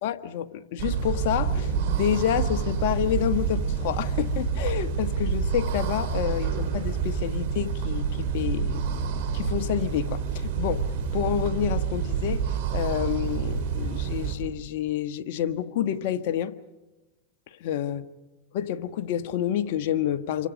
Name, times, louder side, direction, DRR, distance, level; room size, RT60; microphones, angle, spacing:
voice 1, 0.0-8.8 9.3-10.9 11.1-16.6 17.6-18.0 18.5-20.5, left 10 dB, 60° left, 9 dB, 1.3 m, -28 dB
sound 1, 0.8-14.3, right 6 dB, 60° right, 4.8 m, -28 dB
28.0 x 25.0 x 5.2 m, 1.0 s
hypercardioid pair, 115°, 0 cm